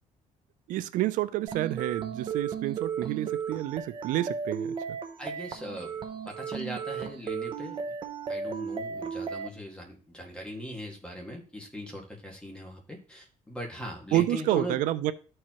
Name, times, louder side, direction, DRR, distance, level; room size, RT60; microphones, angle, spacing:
voice 1, 0.7-5.0 14.1-15.1, right 14 dB, 80° right, 0.5 m, -29 dB
sound 1, 1.5-9.5, right 6 dB, 35° right, 0.7 m, -35 dB
voice 2, 5.2-5.9 6.3-7.8 8.3-14.8, equal, 5° left, 1.9 m, -39 dB
13.0 x 4.7 x 3.0 m
cardioid pair, 145°, 13 cm